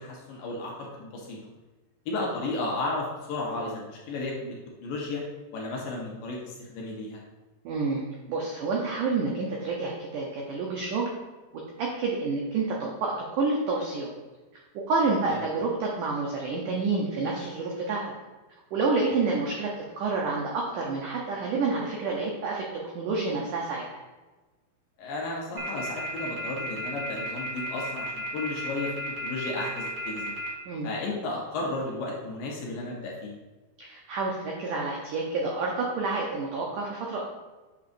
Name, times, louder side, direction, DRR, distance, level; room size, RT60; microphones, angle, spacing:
voice 1, 0.0-1.4 2.1-5.2 5.5-7.2 15.3-15.4 25.0-28.9 29.2-30.3 30.8-33.3, left 2 dB, 70° left, -2 dB, 2.3 m, -33 dB
voice 2, 7.7-8.0 8.3-11.1 11.8-14.1 14.9-18.0 18.7-19.7 20.0-22.6 22.9-23.9 30.7-30.9 33.8-37.2, right 3 dB, 85° right, -2 dB, 1.8 m, -28 dB
sound 1, 25.6-30.5, left 1 dB, 70° right, 1.1 m, -34 dB
8.4 x 6.6 x 2.6 m, 1.2 s
omnidirectional pair, 4.8 m